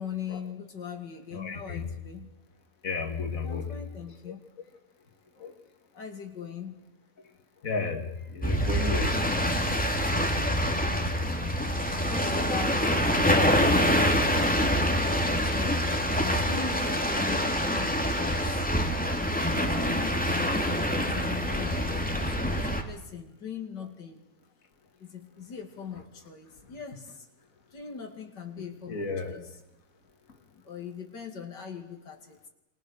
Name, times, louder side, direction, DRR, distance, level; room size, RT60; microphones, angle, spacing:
voice 1, 0.0-2.3 3.4-4.4 5.9-6.8 10.5-15.8 16.1-19.2 19.5-20.6 20.9-24.2 25.0-27.3 27.7-29.5 30.5-32.5, left 6 dB, 90° left, 4 dB, 3.1 m, -41 dB
voice 2, 1.3-1.9 2.8-3.8 5.4-5.5 7.6-9.2 9.5-9.6 15.0-15.2 22.6-22.7 26.6-26.7 28.6-29.4, left 4 dB, 50° left, 4 dB, 2.8 m, -34 dB
sound 1, 8.4-22.8, equal, 5° left, 2.4 m, -26 dB
27.5 x 24.5 x 6.6 m, 0.91 s
omnidirectional pair, 1.8 m